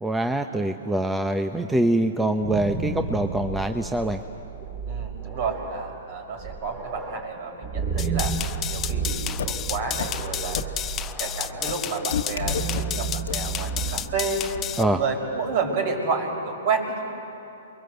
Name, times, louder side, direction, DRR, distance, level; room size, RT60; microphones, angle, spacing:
voice 1, 0.0-4.2 14.8-15.0, right 1 dB, 5° right, 6 dB, 0.9 m, -24 dB
sound 1, 2.4-15.0, right 4 dB, 30° right, 3.5 m, -32 dB
voice 2, 4.9-8.3 8.7-10.6 11.2-14.4 14.8-17.0, right 4 dB, 55° right, 3 dB, 5.5 m, -30 dB
sound 2, 8.0-14.8, left 10 dB, 25° left, 0.8 m, -32 dB
sound 3, 9.4-9.5 10.0-10.1 10.5-10.6 11.7-11.8 12.1-12.8 13.3-13.4, left 8 dB, 70° left, 1.3 m, -27 dB
30.0 x 23.0 x 8.0 m, 2.9 s
hypercardioid pair, 125°, 0 cm